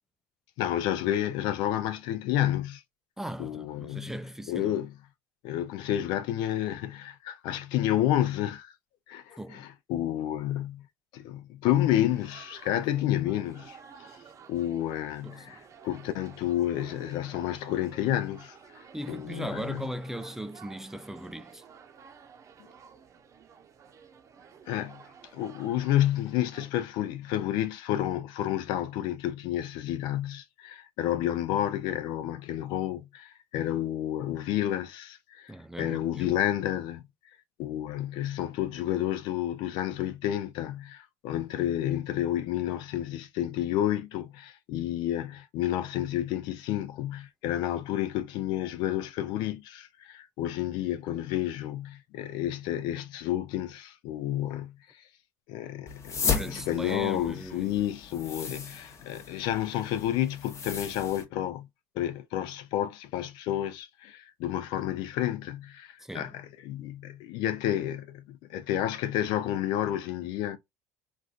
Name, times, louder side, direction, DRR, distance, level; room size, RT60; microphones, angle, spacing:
voice 1, 0.6-2.8 3.4-4.1 4.5-4.9 5.4-8.7 9.1-10.8 11.1-13.8 14.5-18.6 19.1-19.8 24.7-25.0 25.3-35.5 35.8-37.1 37.6-54.7 55.5-61.7 62.0-70.6, left 12 dB, 70° left, 0.5 m, -30 dB
voice 2, 3.2-4.8 9.4-9.6 15.2-15.5 18.9-21.6 35.5-36.3 56.2-57.8 66.0-66.4, right 1 dB, 5° right, 0.4 m, -38 dB
sound 1, 12.1-26.7, right 6 dB, 40° right, 0.8 m, -52 dB
sound 2, 55.9-61.2, left 5 dB, 40° left, 0.9 m, -35 dB
3.2 x 2.6 x 2.4 m
supercardioid pair, 80°, 8 cm